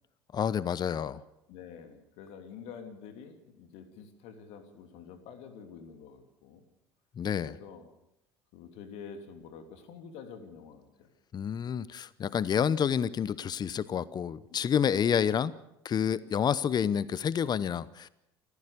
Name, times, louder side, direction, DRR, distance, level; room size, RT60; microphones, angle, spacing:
voice 1, 0.3-1.2 7.2-7.5 11.3-15.5 15.8-18.1, left 8 dB, 35° left, 19 dB, 0.9 m, -29 dB
voice 2, 1.5-6.7 7.4-7.9 8.5-11.1 14.5-14.7, left 6 dB, 60° left, 7 dB, 3.1 m, -48 dB
28.5 x 15.0 x 6.8 m, 0.84 s
figure-of-eight pair, 60°, 12 cm